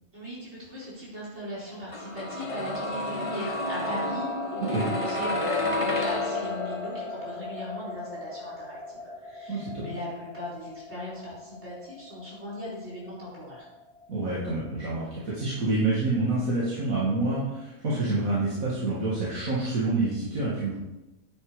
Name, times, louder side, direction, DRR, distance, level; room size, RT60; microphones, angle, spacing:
voice 1, 0.1-13.6, left 1 dB, 50° right, -7 dB, 5.0 m, -38 dB
sound 1, 1.9-13.8 14.0-14.1, left 2 dB, 25° left, 1.1 m, -32 dB
voice 2, 9.5-9.8 14.1-20.7, right 2 dB, 70° right, -8 dB, 2.7 m, -27 dB
9.6 x 9.4 x 5.2 m, 1.0 s
omnidirectional pair, 1.5 m